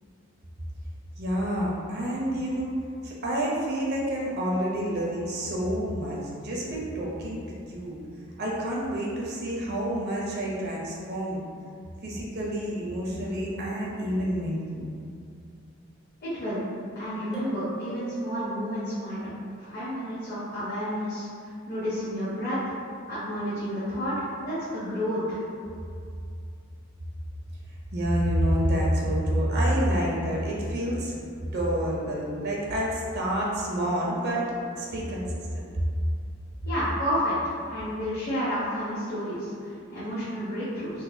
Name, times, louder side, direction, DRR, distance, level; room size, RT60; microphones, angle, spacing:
voice 1, 1.2-2.7 3.0-8.0 8.4-11.5 12.0-14.9 27.9-34.5 34.7-35.8, equal, 50° right, -4 dB, 0.6 m, -28 dB
voice 2, 16.2-16.6 17.0-19.2 19.6-22.7 23.1-25.4 36.6-41.0, equal, 50° left, -12 dB, 0.9 m, -30 dB
sound 1, 17.3-18.8, right 3 dB, 5° right, 0.3 m, -41 dB
3.9 x 2.5 x 2.6 m, 2.4 s
head